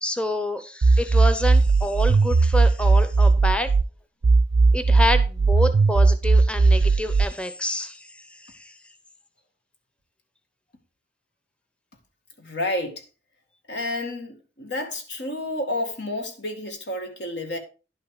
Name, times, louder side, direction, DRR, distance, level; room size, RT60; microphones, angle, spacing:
voice 1, 0.0-3.7 4.7-8.8, left 1 dB, 5° left, 0.8 m, -28 dB
sound 1, 0.8-3.8 4.2-7.3, right 3 dB, 70° right, 0.4 m, -17 dB
voice 2, 12.4-13.0 13.7-17.6, left 1 dB, 70° left, 2.0 m, -30 dB
11.0 x 5.7 x 4.9 m
head